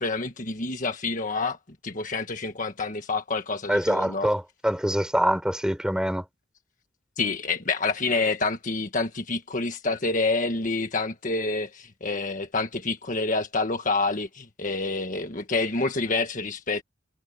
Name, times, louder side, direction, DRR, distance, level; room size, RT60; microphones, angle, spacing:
voice 1, 0.0-1.6 1.8-4.3 7.2-16.8, left 3 dB, 40° left, 1.6 m, -28 dB
voice 2, 3.7-6.2, equal, 5° right, 4.0 m, -24 dB
head